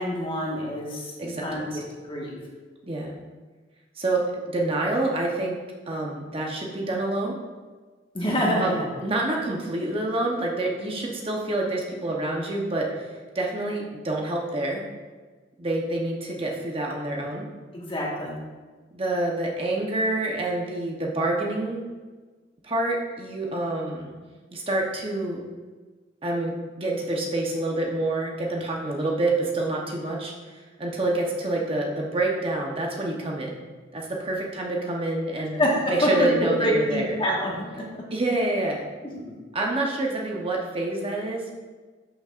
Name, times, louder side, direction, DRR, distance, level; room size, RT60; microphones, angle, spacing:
voice 1, 0.0-1.8 2.1-2.4 8.1-8.9 10.5-10.7 17.7-18.4 35.5-38.0 39.1-39.3, equal, 30° left, -3 dB, 1.5 m, -26 dB
voice 2, 1.2-1.8 2.9-3.1 4.0-5.6 5.9-7.4 8.6-14.8 15.6-17.4 18.9-21.9 22.6-24.1 24.5-25.4 26.2-30.3 30.8-33.6 33.9-35.6 35.9-37.2 38.1-38.8 39.5-41.6, right 2 dB, 30° right, -1 dB, 0.9 m, -27 dB
11.0 x 6.4 x 2.5 m, 1.4 s
head